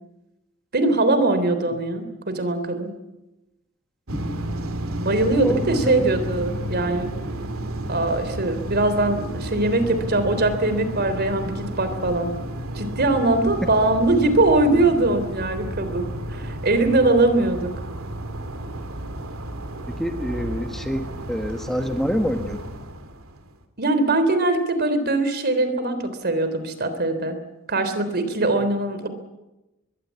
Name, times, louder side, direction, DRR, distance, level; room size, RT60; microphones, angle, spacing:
voice 1, 0.7-2.9 5.0-7.1 7.9-12.3 12.7-17.7 23.8-27.4 27.7-29.1, right 2 dB, 50° right, 10 dB, 3.4 m, -21 dB
sound 1, 4.1-23.5, right 1 dB, 80° right, 2.6 m, -32 dB
voice 2, 5.4-6.1 19.9-22.7, equal, ahead, 5 dB, 1.4 m, -27 dB
24.0 x 21.5 x 8.4 m, 1.0 s
head